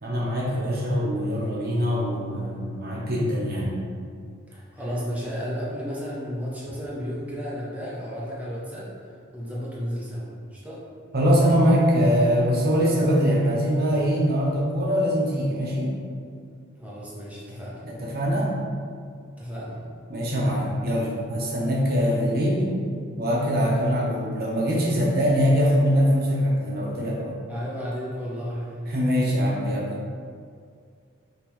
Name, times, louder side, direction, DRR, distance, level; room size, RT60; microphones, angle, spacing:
voice 1, 0.0-3.7 11.1-15.9 17.8-18.5 20.1-22.7 23.2-27.3 28.9-29.9, equal, 50° right, -4 dB, 0.9 m, -23 dB
voice 2, 4.5-8.9 9.3-10.8 16.8-17.8 19.4-19.8 27.5-28.8, equal, 5° right, -7 dB, 0.6 m, -33 dB
5.3 x 2.9 x 3.0 m, 2.2 s
head